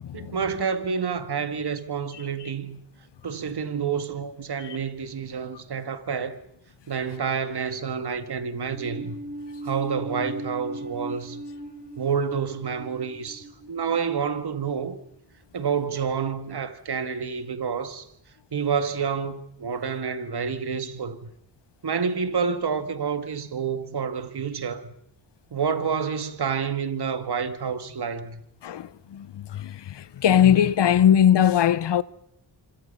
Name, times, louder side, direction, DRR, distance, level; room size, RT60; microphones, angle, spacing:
voice 1, 0.1-2.8 3.2-6.4 6.9-9.2 9.6-11.4 12.0-15.0 15.5-18.1 18.5-21.3 21.8-24.9 25.5-28.4, right 6 dB, 60° right, 2.0 m, -28 dB
sound 1, 8.7-15.1, right 1 dB, 20° right, 6.1 m, -39 dB
voice 2, 28.6-32.0, left 10 dB, 65° left, 0.9 m, -20 dB
26.5 x 25.5 x 5.6 m
cardioid pair, 55°, 45 cm